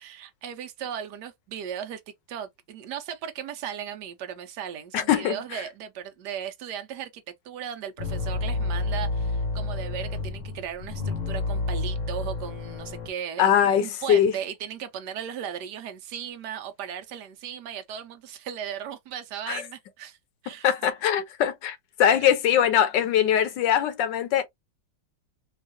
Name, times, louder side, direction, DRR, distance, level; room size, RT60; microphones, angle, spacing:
voice 1, 0.0-2.0 2.3-20.2 20.4-20.7 22.2-22.3, right 9 dB, 70° right, 1.1 m, -37 dB
voice 2, 4.9-5.6 13.4-14.3 19.5-19.6 20.6-24.4, left 9 dB, 80° left, 1.4 m, -22 dB
sound 1, 8.0-13.1, left 3 dB, 55° left, 1.0 m, -29 dB
4.5 x 2.4 x 2.6 m
omnidirectional pair, 2.0 m